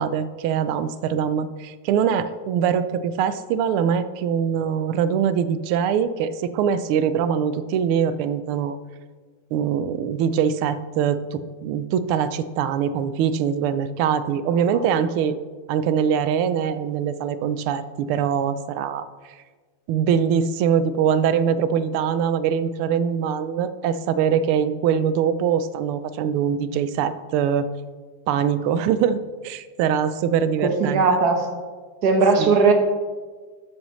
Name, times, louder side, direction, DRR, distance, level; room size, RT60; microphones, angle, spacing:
voice 1, 0.0-8.8 9.5-15.4 15.7-19.1 19.9-27.7 28.3-31.0 32.4-32.5, right 8 dB, 85° right, 13 dB, 1.5 m, -23 dB
voice 2, 30.6-31.5 32.0-32.7, right 4 dB, 55° right, 4 dB, 1.5 m, -18 dB
13.0 x 8.0 x 3.1 m, 1.4 s
omnidirectional pair, 2.4 m